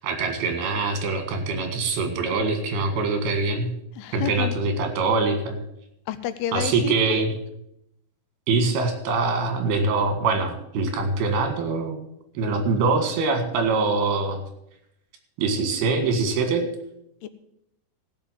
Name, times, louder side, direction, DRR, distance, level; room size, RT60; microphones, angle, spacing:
voice 1, 0.0-3.7 4.1-5.6 6.5-7.3 8.5-12.0 12.4-14.4 15.4-16.7, right 3 dB, 75° right, 6 dB, 3.7 m, -24 dB
voice 2, 4.0-4.6 6.1-7.2 17.2-17.3, left 10 dB, 85° left, 12 dB, 2.7 m, -30 dB
16.0 x 5.7 x 7.5 m, 0.78 s
omnidirectional pair, 4.5 m